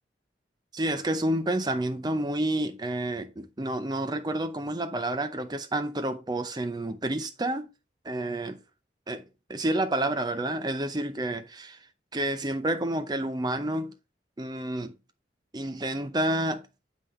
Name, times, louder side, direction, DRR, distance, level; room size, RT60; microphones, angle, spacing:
voice 1, 0.7-7.7 8.0-8.6 9.1-9.2 9.5-11.8 12.1-13.9 14.4-14.9 15.5-16.7, right 1 dB, 20° right, 0.6 m, -29 dB
7.3 x 5.5 x 3.1 m
head